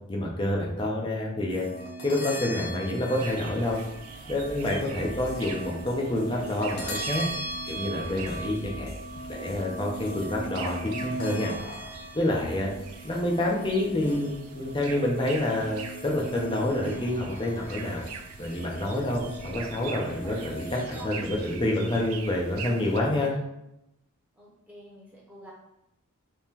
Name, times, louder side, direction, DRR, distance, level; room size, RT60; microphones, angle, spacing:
voice 1, 0.1-1.7 2.0-3.8 4.3-7.2 7.7-8.9 9.3-11.5 12.1-12.7 13.0-18.1 18.4-23.3, left 1 dB, 20° left, -1 dB, 0.6 m, -28 dB
sound 1, 1.5-21.0, right 1 dB, 45° left, 0.9 m, -39 dB
sound 2, 3.1-23.0, right 5 dB, 80° right, 0.4 m, -43 dB
sound 3, 4.4-11.5, left 1 dB, 70° left, 0.6 m, -47 dB
voice 2, 4.8-5.1 20.2-21.1 23.2-23.4 24.3-25.5, equal, 5° right, -6 dB, 0.9 m, -47 dB
3.7 x 3.0 x 2.8 m, 0.85 s
head